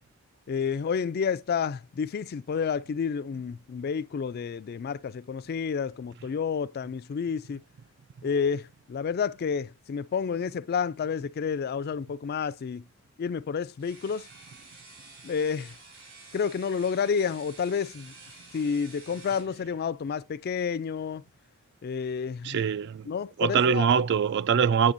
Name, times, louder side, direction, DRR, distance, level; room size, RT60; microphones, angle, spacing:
voice 1, 0.5-7.6 8.2-12.8 13.2-14.3 15.2-15.7 16.3-18.1 18.5-21.2 21.8-22.6 23.1-23.9, left 6 dB, 45° left, 0.3 m, -30 dB
sound 1, 13.8-19.5, right 3 dB, 75° right, 5.4 m, -50 dB
voice 2, 22.4-23.1 23.4-24.9, right 7 dB, 55° right, 0.3 m, -23 dB
8.6 x 6.6 x 2.6 m
head